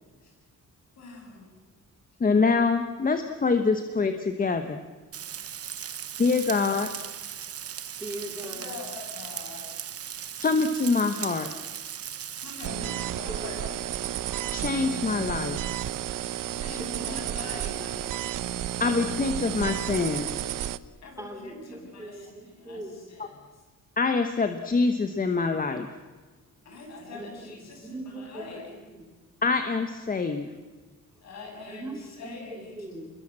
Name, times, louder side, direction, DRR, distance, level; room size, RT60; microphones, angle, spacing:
voice 1, 1.0-1.5 8.4-9.7 12.4-13.8 16.5-18.1 21.0-23.6 26.6-28.7 31.2-32.8, left 3 dB, 55° left, 2 dB, 7.4 m, -43 dB
voice 2, 2.2-4.8 6.2-6.9 10.4-11.5 14.5-15.7 18.8-20.4 24.0-25.9 29.4-30.5, left 4 dB, 25° left, 7 dB, 1.2 m, -25 dB
Frying (food), 5.1-12.7, right 9 dB, 50° right, 1.0 m, -38 dB
voice 3, 8.0-8.7 13.3-13.5 16.7-18.0 21.2-22.9 27.1-29.1 31.7-33.1, right 1 dB, 10° right, 3 dB, 2.8 m, -41 dB
sound 1, 12.6-20.8, right 12 dB, 90° right, 0.9 m, -32 dB
27.5 x 21.5 x 7.7 m, 1.3 s
wide cardioid pair, 170°, 31 cm